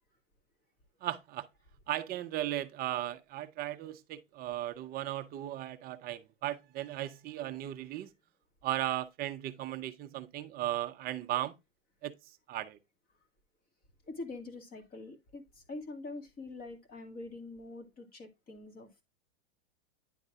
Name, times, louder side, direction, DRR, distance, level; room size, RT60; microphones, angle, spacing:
voice 1, 1.0-1.5 1.9-8.1 8.6-11.6 12.0-12.8, right 14 dB, 25° right, 0.7 m, -36 dB
voice 2, 14.1-19.0, left 2 dB, 25° left, 2.0 m, -45 dB
10.0 x 3.8 x 3.5 m
hypercardioid pair, 135°, 37 cm